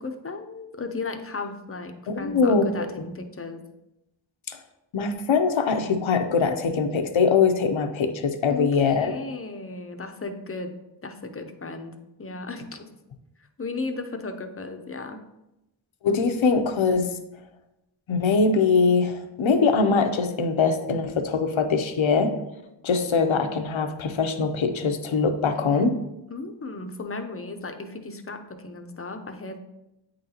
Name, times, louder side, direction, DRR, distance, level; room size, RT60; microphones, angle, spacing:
voice 1, 0.0-3.6 8.5-10.7 11.0-12.9 13.6-15.2 26.3-29.6, left 3 dB, 30° left, 6 dB, 0.6 m, -35 dB
voice 2, 2.1-2.7 4.5-4.6 4.9-9.1 16.0-17.1 18.1-22.3 22.8-25.9, left 4 dB, 85° left, 7 dB, 0.7 m, -22 dB
8.5 x 3.9 x 2.8 m, 0.91 s
wide cardioid pair, 80°, 46 cm